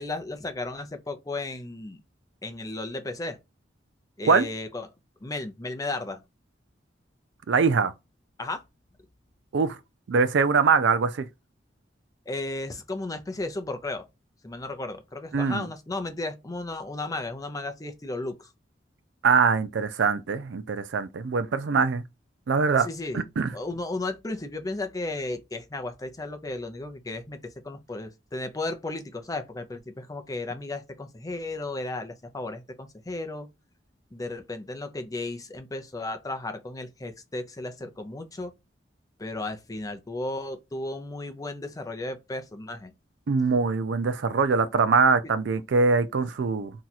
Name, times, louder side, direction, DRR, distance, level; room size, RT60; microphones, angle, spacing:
voice 1, 0.0-2.0 2.4-3.4 4.2-4.9 5.2-6.2 8.4-8.6 12.3-14.0 14.4-18.5 22.8-23.2 23.5-33.5 34.1-38.5 39.2-42.9, left 2 dB, 20° left, 0.5 m, -34 dB
voice 2, 7.5-7.9 9.5-9.8 10.1-11.3 15.3-15.7 19.2-22.0 22.5-22.9 23.1-23.5 43.3-46.7, right 5 dB, 75° right, 0.4 m, -23 dB
2.8 x 2.3 x 4.0 m
head